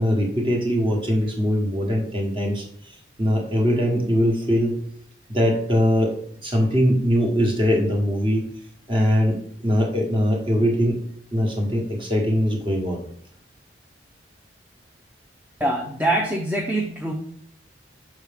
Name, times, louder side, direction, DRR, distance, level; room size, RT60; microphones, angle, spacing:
voice 1, 0.0-4.8 5.3-6.2 6.4-8.4 8.9-9.4 9.6-11.0 11.3-13.0, equal, 25° right, 0 dB, 1.2 m, -21 dB
voice 2, 15.6-17.1, right 1 dB, 10° right, 0 dB, 0.4 m, -24 dB
6.3 x 4.6 x 3.5 m, 0.64 s
head